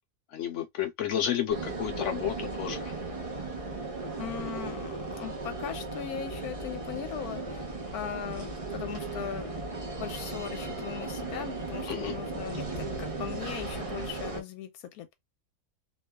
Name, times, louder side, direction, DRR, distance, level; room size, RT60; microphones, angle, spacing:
voice 1, 0.3-2.9 11.9-12.1, left 10 dB, 65° left, 0.8 m, -31 dB
sound 1, 1.5-14.4, right 3 dB, 30° right, 0.7 m, -36 dB
voice 2, 4.2-7.6 7.9-15.1, left 9 dB, 85° left, 1.1 m, -39 dB
3.0 x 2.1 x 2.2 m
omnidirectional pair, 1.6 m